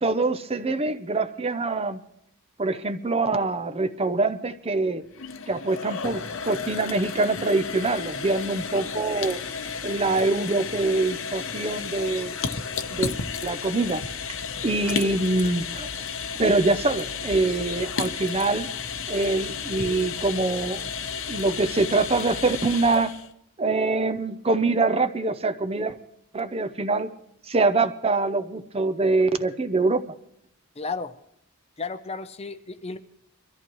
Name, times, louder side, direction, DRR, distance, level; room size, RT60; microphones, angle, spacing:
voice 1, 0.0-2.0 2.6-5.0 5.5-9.4 9.8-12.4 12.9-13.1 13.4-14.0 14.6-15.9 16.4-18.7 19.1-20.8 21.3-23.1 23.6-26.0 26.3-27.1 27.5-30.0, right 3 dB, 25° right, 11 dB, 0.5 m, -24 dB
sound 1, 5.0-23.3, left 6 dB, 60° left, 0.8 m, -33 dB
voice 2, 30.8-31.1 31.8-33.0, left 4 dB, 25° left, 11 dB, 0.6 m, -33 dB
23.0 x 14.0 x 3.1 m, 0.76 s
head